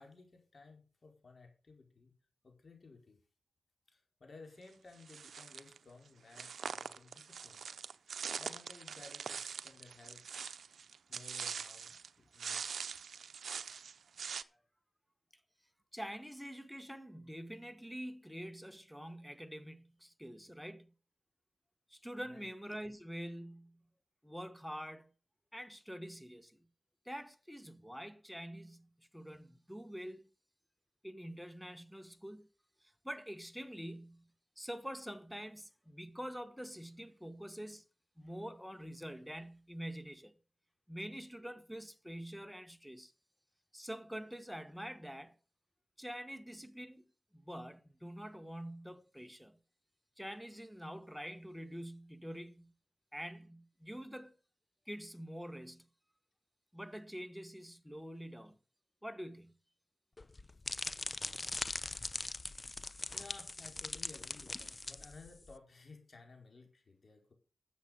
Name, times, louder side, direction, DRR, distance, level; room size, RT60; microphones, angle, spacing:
voice 1, 0.0-2.1 2.4-3.2 3.9-7.6 8.4-10.2 11.1-12.6 22.2-22.5 60.5-60.6 63.1-67.3, left 3 dB, 60° left, 4.9 m, -57 dB
sound 1, 5.0-5.8 6.3-12.1 12.4-14.4, right 6 dB, 85° right, 0.6 m, -43 dB
voice 2, 15.9-20.9 21.9-23.8 24.2-25.1 25.5-26.7 27.0-30.3 31.0-32.5 32.8-34.3 34.6-37.8 38.2-40.4 40.9-43.1 43.7-45.4 46.0-49.6 50.2-52.7 53.1-54.3 54.9-55.9 56.7-58.6 59.0-59.6 63.1-63.2, equal, ahead, 1.3 m, -46 dB
sound 2, 60.2-65.5, left 2 dB, 35° left, 0.7 m, -41 dB
12.5 x 7.5 x 5.5 m
cardioid pair, 45°, 0 cm